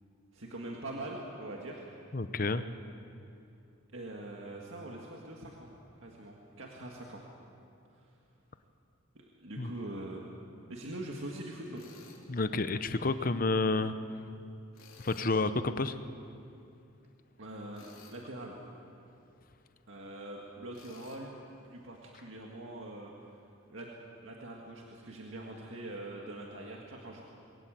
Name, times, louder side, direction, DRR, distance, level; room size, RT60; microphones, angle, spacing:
voice 1, 0.3-1.9 3.9-5.7 6.0-7.2 8.0-8.1 9.2-10.3 10.7-11.9 17.4-17.8 18.1-18.6 19.9-21.4 21.6-23.4 23.7-23.9 24.2-27.2, right 1 dB, 65° right, -1 dB, 1.9 m, -43 dB
voice 2, 2.1-2.6 9.6-9.7 12.3-13.9 15.0-16.0, left 3 dB, 40° left, 11 dB, 0.7 m, -30 dB
Tools, 11.8-12.2 14.7-15.3 17.7-18.3 20.7-21.2, left 5 dB, 80° left, 3.2 m, -55 dB
22.0 x 17.5 x 7.7 m, 2.6 s
head